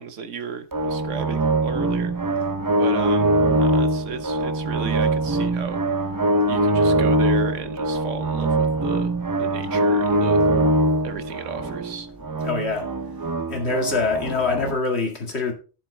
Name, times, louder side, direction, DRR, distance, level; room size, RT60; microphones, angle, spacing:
voice 1, 0.0-2.2 2.8-5.8 6.5-9.1 9.4-10.4 11.0-12.1, right 6 dB, 85° right, 1.3 m, -33 dB
sound 1, 0.7-14.7, right 1 dB, 30° right, 0.4 m, -22 dB
voice 2, 12.4-12.9 13.5-15.5, left 3 dB, 60° left, 2.3 m, -24 dB
11.0 x 7.2 x 3.3 m
omnidirectional pair, 1.2 m